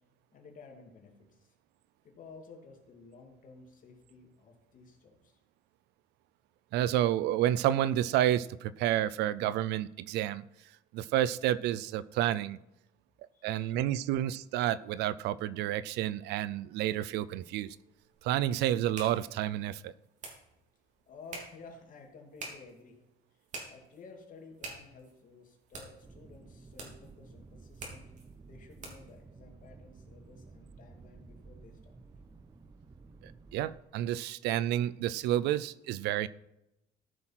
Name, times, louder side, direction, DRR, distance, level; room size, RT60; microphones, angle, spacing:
voice 1, 0.3-1.5 2.0-5.4 13.3-13.7 21.1-23.0 23.7-28.0 28.5-31.9, left 3 dB, 50° left, 2.6 m, -53 dB
voice 2, 6.7-10.4 10.9-12.6 13.4-17.8 18.2-19.9 33.2-36.3, right 12 dB, 85° right, 0.4 m, -30 dB
sound 1, 17.8-29.2, right 3 dB, 45° right, 3.1 m, -49 dB
sound 2, 26.0-33.8, right 3 dB, 25° right, 0.8 m, -53 dB
14.0 x 6.2 x 5.8 m
cardioid pair, 110°, 17 cm